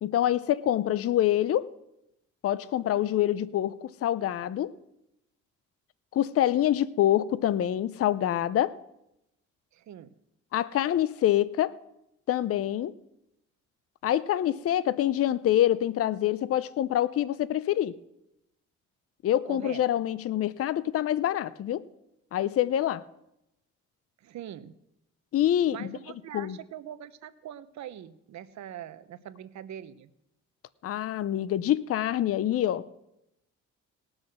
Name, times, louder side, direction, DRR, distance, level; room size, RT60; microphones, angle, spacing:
voice 1, 0.0-1.7 2.4-4.7 6.1-8.8 10.5-11.8 12.3-12.9 14.0-18.0 19.2-21.8 22.3-23.0 25.3-25.9 26.3-26.6 30.8-32.8, left 12 dB, 50° left, 0.5 m, -26 dB
voice 2, 9.7-10.1 19.5-20.0 24.2-24.7 25.7-30.1, right 10 dB, 65° right, 0.9 m, -43 dB
18.5 x 6.3 x 6.2 m
cardioid pair, 90°, 30 cm